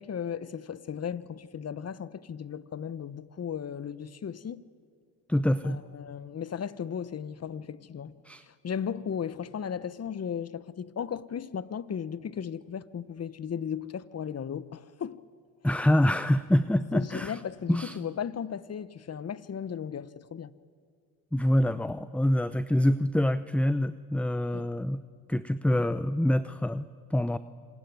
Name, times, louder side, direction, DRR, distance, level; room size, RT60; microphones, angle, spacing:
voice 1, 0.0-4.6 5.6-8.1 8.4-15.2 16.9-20.5 24.5-24.6, left 8 dB, 35° left, 1.0 m, -36 dB
voice 2, 5.3-5.8 8.2-8.4 15.6-17.4 17.7-18.0 21.3-25.0 25.3-27.4, left 1 dB, 5° left, 0.6 m, -26 dB
26.5 x 19.5 x 9.4 m
supercardioid pair, 70°, 44 cm